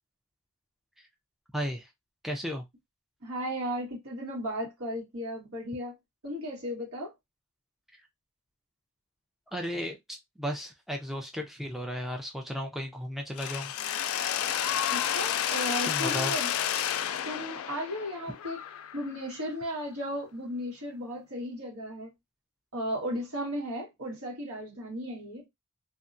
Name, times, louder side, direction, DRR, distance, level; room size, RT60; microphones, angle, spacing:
voice 1, 1.5-1.9 2.2-2.6 9.5-13.7 15.8-16.4, equal, ahead, 0.4 m, -34 dB
voice 2, 3.2-5.9 6.2-7.1 14.9-16.5 17.2-18.6 18.9-22.1 22.7-25.5, equal, 80° right, 1.5 m, -35 dB
Mechanisms, 13.4-19.2, left 10 dB, 70° left, 0.3 m, -31 dB
2.7 x 2.2 x 2.5 m
head